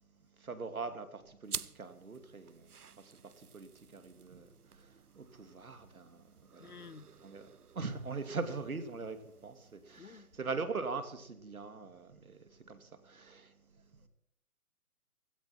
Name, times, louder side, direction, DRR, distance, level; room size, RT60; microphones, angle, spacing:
voice 1, 0.4-6.7 7.2-14.1, right 4 dB, 70° right, 2.6 m, -42 dB
sound 1, 1.4-10.4, right 6 dB, 90° right, 0.8 m, -50 dB
voice 2, 6.6-7.2 10.0-10.3, left 5 dB, 85° left, 1.0 m, -52 dB
16.5 x 15.0 x 4.4 m
figure-of-eight pair, 145°, 44 cm